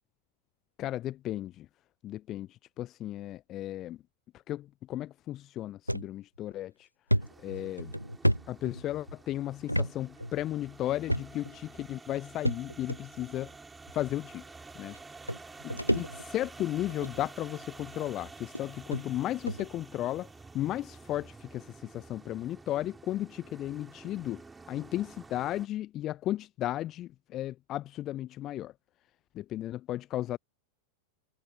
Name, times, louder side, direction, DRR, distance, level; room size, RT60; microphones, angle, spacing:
voice 1, 0.8-1.7 2.0-4.0 4.5-6.9 7.4-7.9 8.5-13.5 13.9-14.5 14.7-15.0 15.6-28.7 29.3-30.4, left 13 dB, 35° left, 0.6 m, -35 dB
sound 1, 5.9-6.1 6.5-6.6 7.1-9.1 9.7-9.9 10.2-10.3 11.1-11.6 12.5-13.0 13.9-14.0 14.9-15.0 15.3-16.5 16.9-17.2 18.0-18.1 18.5-18.6 18.9-19.0 19.5-19.7, equal, 90° right, 0.7 m, -30 dB
sound 2, 7.2-25.7, right 3 dB, 10° right, 4.8 m, -50 dB
figure-of-eight pair, 90°, 0 cm